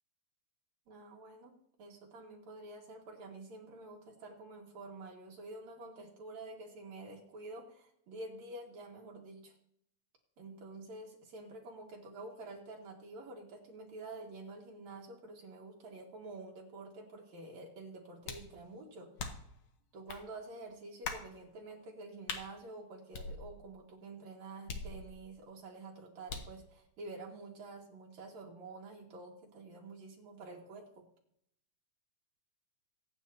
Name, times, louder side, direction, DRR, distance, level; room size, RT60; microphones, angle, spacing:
voice 1, 0.9-9.5 10.4-19.2 19.9-31.0, right 2 dB, 75° right, -1 dB, 3.0 m, -49 dB
sound 1, 18.2-18.6 19.2-19.6 20.1-20.2 21.0-21.3 22.3-22.5 23.1-23.8 24.7-25.4 26.3-26.6, left 4 dB, 55° left, 1.8 m, -42 dB
22.0 x 9.1 x 2.8 m, 0.70 s
omnidirectional pair, 3.3 m